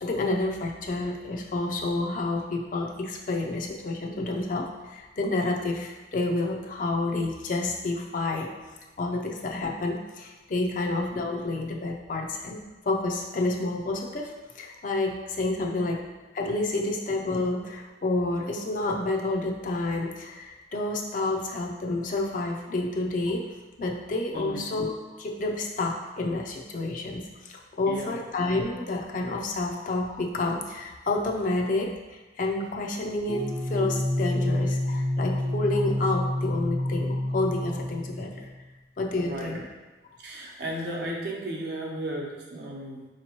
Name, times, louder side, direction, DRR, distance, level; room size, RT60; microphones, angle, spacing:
voice 1, 0.0-8.5 9.0-12.6 12.8-16.0 16.3-23.5 23.8-38.5 39.0-39.6, left 2 dB, 50° left, 0 dB, 0.5 m, -29 dB
voice 2, 24.3-24.7 27.9-28.2 39.2-39.7 40.2-43.1, right 1 dB, 65° right, -2 dB, 0.8 m, -34 dB
sound 1, 33.3-38.5, left 1 dB, 25° right, 0.6 m, -28 dB
5.0 x 2.9 x 2.9 m, 1.2 s
head